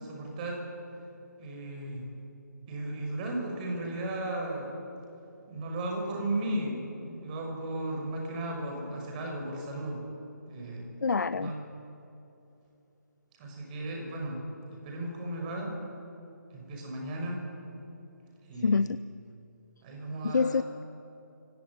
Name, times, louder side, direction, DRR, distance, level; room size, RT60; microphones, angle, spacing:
voice 1, 0.1-0.6 1.4-2.1 2.7-4.7 5.5-10.0 10.5-10.9 11.4-11.6 13.4-14.4 14.7-15.7 16.5-17.4 18.5-18.8 19.8-20.7, right 1 dB, 25° right, 1 dB, 6.0 m, -35 dB
voice 2, 11.0-11.5 18.6-19.0 20.2-20.8, left 4 dB, 70° left, 15 dB, 0.6 m, -26 dB
24.5 x 17.5 x 9.9 m, 2.9 s
figure-of-eight pair, 150°, 10 cm